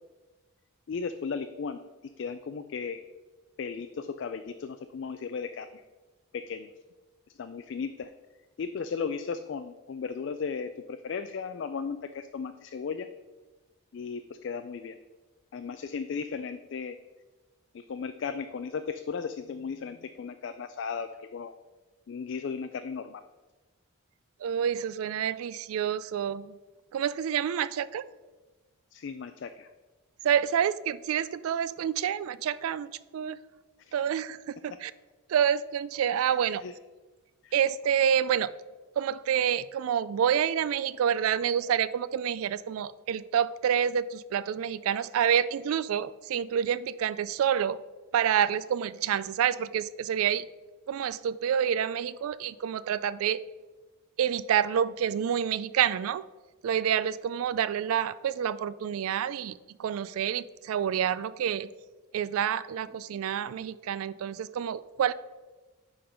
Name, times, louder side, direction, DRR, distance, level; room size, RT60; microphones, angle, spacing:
voice 1, 0.9-3.0 3.6-5.8 6.3-6.7 7.4-8.1 8.6-13.1 13.9-14.9 15.5-17.0 17.7-21.5 22.1-23.2 28.9-29.7 33.8-33.9 36.6-36.7 37.4-37.5, left 5 dB, 55° left, 9 dB, 0.3 m, -36 dB
voice 2, 24.4-26.5 26.9-28.0 30.2-33.4 33.9-34.9 35.3-36.6 37.5-38.5 39.0-47.8 48.1-50.5 50.9-53.4 54.2-56.2 56.6-61.7 62.1-65.1, right 9 dB, 85° right, 17 dB, 0.3 m, -28 dB
10.0 x 3.8 x 5.1 m, 1.2 s
head